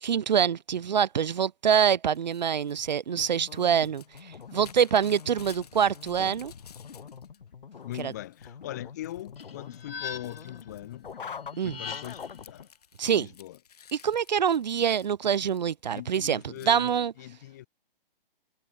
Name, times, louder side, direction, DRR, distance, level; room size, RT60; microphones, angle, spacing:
voice 1, 0.0-6.5 8.0-8.1 11.6-11.8 13.0-13.3 13.9-17.1, right 8 dB, 50° right, 0.7 m, -25 dB
Crumpling crinkling / Tearing, 2.1-7.4 7.7-8.5 9.0-9.4 9.7-16.0 16.6-16.8, left 8 dB, 40° left, 6.4 m, -55 dB
sound 1, 3.1-12.7, left 6 dB, 60° left, 3.7 m, -45 dB
voice 2, 7.8-11.1 11.6-12.7 13.0-13.6 15.9-17.7, left 14 dB, 20° left, 1.2 m, -41 dB
sound 2, 9.4-10.6 11.5-12.4, left 6 dB, 85° left, 3.4 m, -40 dB
hypercardioid pair, 175°, 29 cm